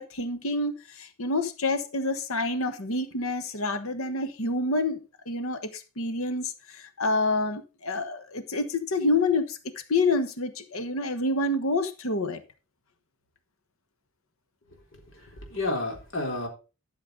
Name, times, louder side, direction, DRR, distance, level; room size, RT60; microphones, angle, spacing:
voice 1, 0.0-9.6 9.9-12.4, left 2 dB, 80° left, 1.2 m, -28 dB
voice 2, 14.7-16.5, left 2 dB, 60° left, 3.9 m, -32 dB
12.5 x 6.7 x 3.9 m
head